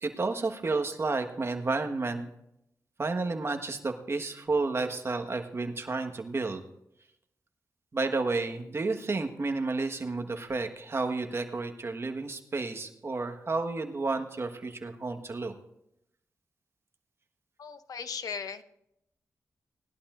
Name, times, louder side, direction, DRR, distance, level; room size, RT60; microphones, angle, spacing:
voice 1, 0.0-2.3 3.0-6.6 7.9-15.5, right 3 dB, 45° right, 5 dB, 1.4 m, -31 dB
voice 2, 17.6-18.6, left 6 dB, 85° left, 11 dB, 0.7 m, -37 dB
19.0 x 11.5 x 2.5 m, 0.78 s
cardioid pair, 75°, 6 cm